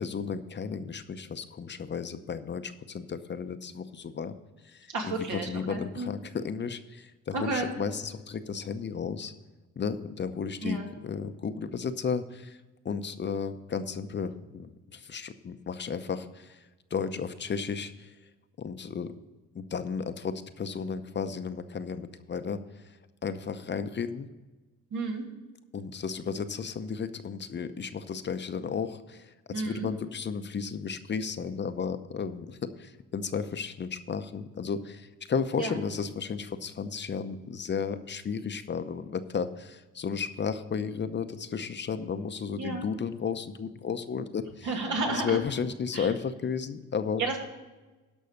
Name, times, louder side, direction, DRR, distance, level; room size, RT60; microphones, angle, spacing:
voice 1, 0.0-4.4 4.6-9.3 9.8-12.6 12.8-18.1 18.6-19.1 19.5-24.3 25.7-44.7 45.1-47.2, left 6 dB, 35° left, 10 dB, 0.7 m, -34 dB
voice 2, 4.9-6.1 7.3-7.7 10.6-10.9 24.9-25.2 29.5-29.9 35.6-35.7 42.6-42.9 44.6-45.4 45.9-46.1 47.2-47.4, right 3 dB, 75° right, 0 dB, 2.6 m, -31 dB
12.5 x 5.5 x 6.5 m, 1.2 s
cardioid pair, 90°, 30 cm